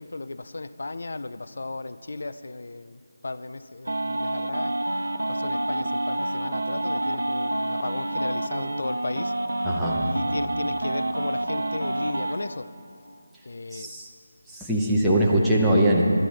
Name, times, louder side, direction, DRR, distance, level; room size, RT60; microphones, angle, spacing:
voice 1, 0.0-2.9 3.2-4.7 5.3-9.3 10.1-12.6 13.5-13.9, left 2 dB, 60° left, 0.4 m, -35 dB
sound 1, 3.9-12.3, right 1 dB, 80° right, 0.8 m, -28 dB
voice 2, 9.6-10.0 10.3-10.4 13.7-14.1 14.5-16.0, right 1 dB, ahead, 0.7 m, -22 dB
12.0 x 8.9 x 6.4 m
figure-of-eight pair, 175°, 0 cm